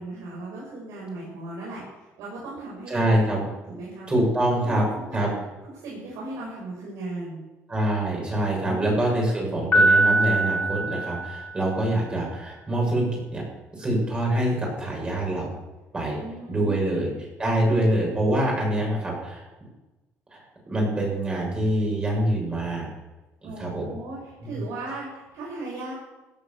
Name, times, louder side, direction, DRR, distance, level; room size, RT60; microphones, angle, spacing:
voice 1, 0.0-3.1 3.7-4.1 4.5-5.4 5.8-7.4 16.1-17.1 17.7-17.8 23.4-25.9, right 2 dB, 80° right, -5 dB, 6.8 m, -37 dB
voice 2, 2.9-3.4 4.1-4.8 5.1-5.3 7.7-13.1 13.3-13.4 13.7-15.5 15.9-16.2 16.5-17.1 17.4-19.5 20.3-20.4 20.7-22.9 23.4-23.9 24.4-24.6, right 1 dB, 20° right, -1 dB, 7.3 m, -25 dB
Piano, 9.7-11.8, right 2 dB, 30° left, 3.9 m, -22 dB
16.0 x 11.5 x 7.3 m, 1.1 s
cardioid pair, 145°, 5 cm